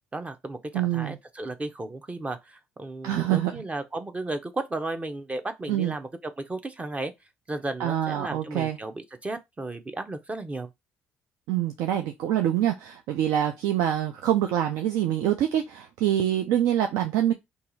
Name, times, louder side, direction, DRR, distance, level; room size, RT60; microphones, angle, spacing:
voice 1, 0.1-7.1 7.5-10.7, right 2 dB, 25° right, 0.7 m, -34 dB
voice 2, 0.7-1.2 3.0-3.5 5.7-5.9 7.8-8.8 11.5-17.3, right 11 dB, 75° right, 0.4 m, -25 dB
2.7 x 2.4 x 3.9 m
hypercardioid pair, 55°, 6 cm